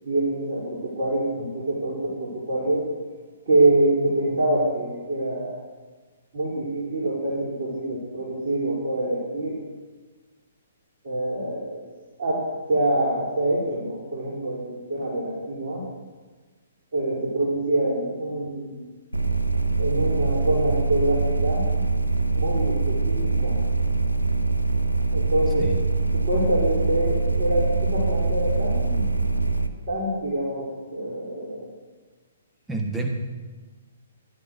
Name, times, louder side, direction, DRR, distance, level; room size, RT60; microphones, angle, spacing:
voice 1, 0.0-2.9 3.5-5.6 6.3-9.6 11.0-11.8 12.2-15.8 16.9-18.9 19.8-21.7 22.3-23.6 25.1-25.7 26.1-29.4 29.9-31.7, right 1 dB, 45° right, -7 dB, 4.6 m, -25 dB
sound 1, 19.1-29.7, right 3 dB, 85° right, 1.0 m, -23 dB
voice 2, 32.7-33.1, right 3 dB, 5° right, 2 dB, 1.4 m, -28 dB
14.5 x 11.0 x 6.5 m, 1.3 s
figure-of-eight pair, 125°, 0 cm